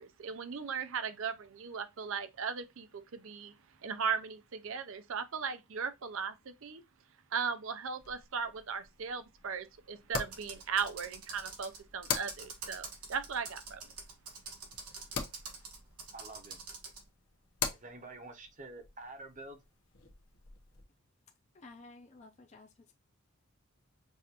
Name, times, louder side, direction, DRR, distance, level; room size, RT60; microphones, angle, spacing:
voice 1, 0.0-3.5 3.8-6.8 7.3-13.8, right 6 dB, 65° right, 0.5 m, -37 dB
sound 1, 8.0-20.8, left 6 dB, 70° left, 0.9 m, -44 dB
Computer keyboard, 10.3-17.0, right 4 dB, 85° right, 1.5 m, -47 dB
voice 2, 16.1-16.6 17.7-19.6, right 2 dB, 35° right, 0.7 m, -48 dB
voice 3, 21.5-22.9, left 3 dB, 30° left, 0.5 m, -54 dB
5.4 x 2.5 x 2.8 m
head